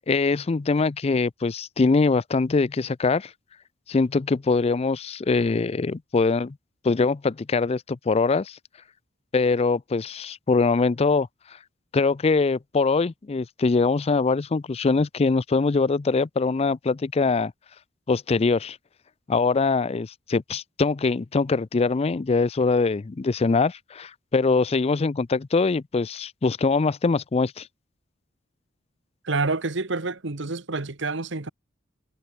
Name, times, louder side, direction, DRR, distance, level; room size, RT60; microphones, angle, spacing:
voice 1, 0.1-3.3 3.9-6.6 6.8-8.6 9.3-11.3 11.9-17.5 18.1-18.8 19.3-27.7, left 4 dB, 30° left, 0.4 m, -23 dB
voice 2, 29.2-31.5, right 3 dB, 65° right, 1.5 m, -28 dB
head